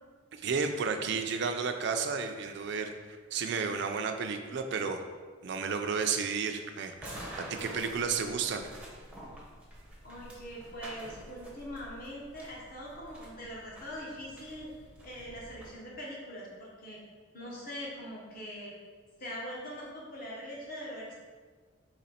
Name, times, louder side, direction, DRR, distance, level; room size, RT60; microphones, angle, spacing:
voice 1, 0.3-2.9 3.3-5.0 5.4-8.7, right 5 dB, 55° right, 6 dB, 0.3 m, -32 dB
sound 1, 7.0-15.7, right 1 dB, 5° right, 0.6 m, -48 dB
voice 2, 10.0-14.7 15.0-17.0 17.3-18.7 19.2-21.2, equal, 45° left, -4 dB, 1.0 m, -42 dB
4.0 x 2.9 x 4.2 m, 1.5 s
head